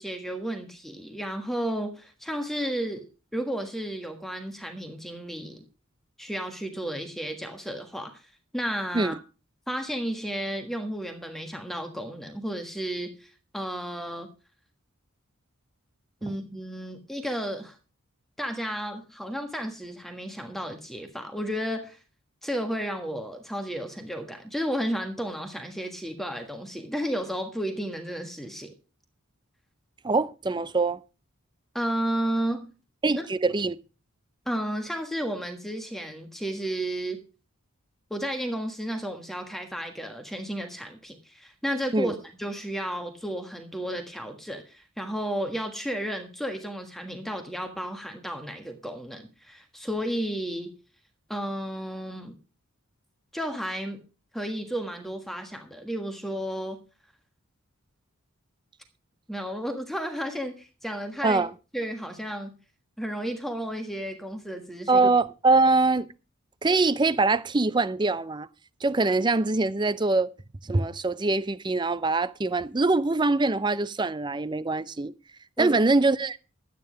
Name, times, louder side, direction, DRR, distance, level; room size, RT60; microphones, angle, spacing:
voice 1, 0.0-3.1 3.3-5.6 6.2-8.2 8.5-9.2 9.7-14.3 16.2-17.8 18.4-22.0 22.4-28.7 31.7-32.6 33.2-33.3 34.4-37.2 38.1-50.7 51.3-52.4 53.3-54.0 54.3-56.8 59.3-61.4 61.7-62.6 63.0-65.1 75.6-75.8, equal, ahead, 1.5 m, -32 dB
voice 2, 30.0-31.0 33.0-33.8 41.9-42.1 61.2-61.5 64.9-66.1 66.6-68.5 68.8-70.3 70.6-75.1 75.6-76.4, right 3 dB, 20° right, 0.5 m, -23 dB
12.0 x 9.3 x 5.0 m
head